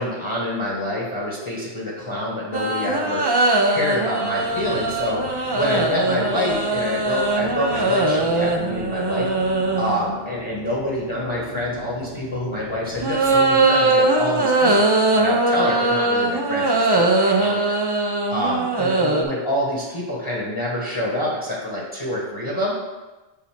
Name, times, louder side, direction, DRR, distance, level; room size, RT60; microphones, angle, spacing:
voice 1, 0.0-3.4 3.6-9.3 9.8-17.7 18.3-22.8, left 1 dB, 25° left, -5 dB, 1.2 m, -27 dB
sound 1, 2.5-10.1 12.9-19.2, right 2 dB, 30° right, 0.5 m, -20 dB
sound 2, 4.4-13.7, left 1 dB, 50° right, 1.5 m, -39 dB
7.3 x 2.8 x 5.8 m, 1.2 s
omnidirectional pair, 1.1 m